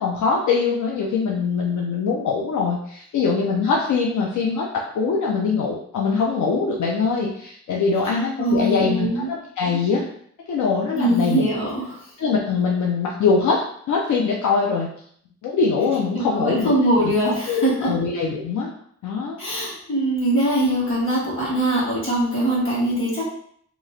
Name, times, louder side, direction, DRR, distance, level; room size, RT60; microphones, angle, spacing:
voice 1, 0.0-4.7 4.9-10.1 10.5-11.5 12.2-13.6 13.9-14.9 15.4-16.7 17.0-18.7 19.0-19.4, left 5 dB, 80° left, -2 dB, 0.5 m, -22 dB
voice 2, 8.4-9.3 10.9-12.0 16.1-17.9 19.4-23.2, right 1 dB, 45° left, -6 dB, 1.5 m, -22 dB
3.0 x 2.4 x 2.6 m, 0.64 s
wide cardioid pair, 135°, 30 cm